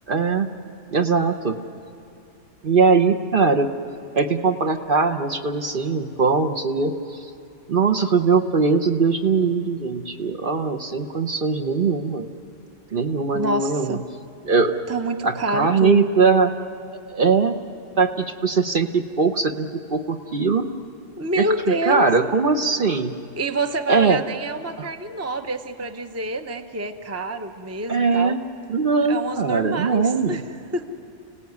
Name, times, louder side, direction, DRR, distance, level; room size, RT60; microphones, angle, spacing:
voice 1, 0.1-0.5 0.9-1.6 2.6-3.7 4.1-6.9 7.7-12.3 12.9-14.0 14.4-14.7 15.2-16.5 17.1-17.6 18.0-20.7 21.4-21.5 21.9-23.1 23.9-24.2 27.9-28.4 28.7-30.4, right 4 dB, 50° right, 4 dB, 1.0 m, -20 dB
voice 2, 13.3-14.0 14.9-16.1 21.2-22.1 23.4-28.4 29.1-30.4 30.7-30.9, right 2 dB, 15° right, 7 dB, 0.8 m, -27 dB
30.0 x 18.0 x 9.4 m, 2.6 s
omnidirectional pair, 1.3 m